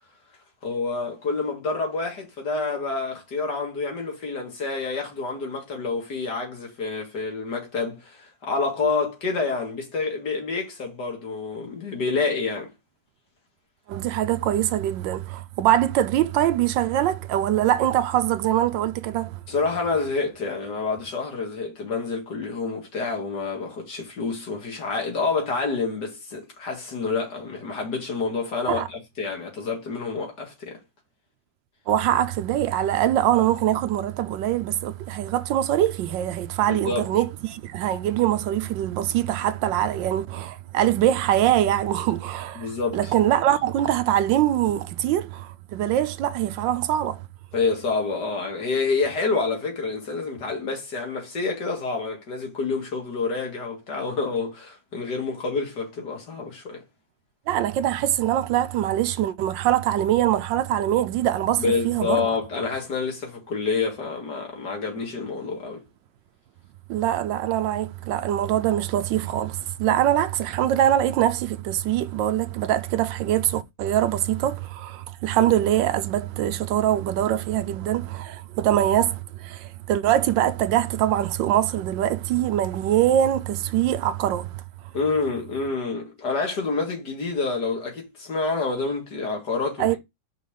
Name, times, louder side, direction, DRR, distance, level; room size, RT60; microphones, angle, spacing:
voice 1, 0.6-12.7 19.5-30.8 36.7-37.1 42.6-43.1 47.5-56.8 61.6-65.8 84.9-90.0, left 4 dB, 60° left, 2.6 m, -28 dB
voice 2, 13.9-19.4 28.7-28.9 31.9-47.2 57.5-62.3 66.9-84.6 89.8-90.0, right 12 dB, 80° right, 1.3 m, -23 dB
5.4 x 3.9 x 5.0 m
omnidirectional pair, 2.0 m